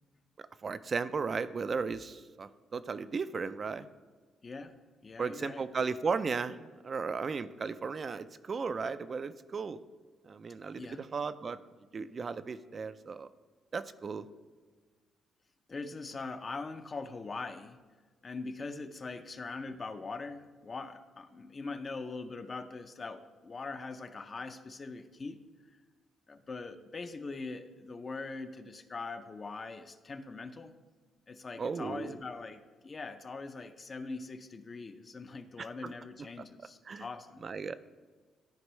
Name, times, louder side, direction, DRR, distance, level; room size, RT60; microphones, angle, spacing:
voice 1, 0.6-3.9 5.2-9.8 10.3-11.6 11.9-13.3 13.7-14.3 31.6-32.1 35.6-35.9 36.9-37.0 37.4-37.8, right 5 dB, 40° right, 13 dB, 0.4 m, -35 dB
voice 2, 4.4-5.8 10.7-11.0 15.7-17.8 18.2-25.4 26.3-30.7 31.3-37.4, left 3 dB, 35° left, 8 dB, 0.5 m, -42 dB
13.0 x 4.4 x 3.1 m, 1.4 s
cardioid pair, 90°, 0 cm